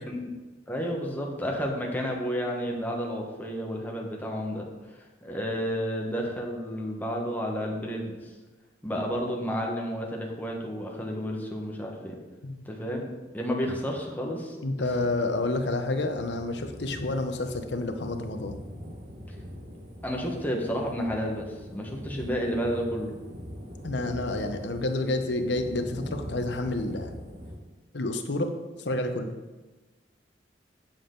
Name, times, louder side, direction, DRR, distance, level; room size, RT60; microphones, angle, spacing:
voice 1, 0.7-4.7 5.2-8.3 8.8-12.2 12.6-14.9 20.0-23.2, equal, 10° left, 0 dB, 1.3 m, -31 dB
voice 2, 14.6-18.6 23.8-27.1 27.9-28.5 28.8-29.4, left 2 dB, 65° left, 6 dB, 0.9 m, -29 dB
sound 1, 14.8-27.6, equal, 45° right, 1.6 m, -42 dB
8.8 x 7.4 x 3.9 m, 1.2 s
head